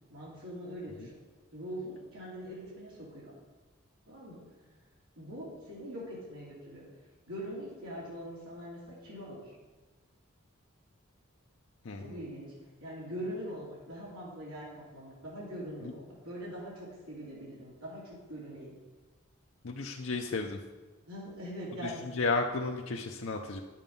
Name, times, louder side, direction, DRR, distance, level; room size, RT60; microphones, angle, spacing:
voice 1, 0.1-1.2 1.5-3.3 4.1-4.4 5.2-6.8 7.3-9.5 12.0-12.5 12.8-18.7 21.1-22.0, equal, 90° right, -7 dB, 2.8 m, -42 dB
voice 2, 11.8-12.2 15.8-15.9 19.6-20.6 21.8-23.6, left 3 dB, 65° left, 1 dB, 0.6 m, -33 dB
10.0 x 7.3 x 5.4 m, 1.3 s
head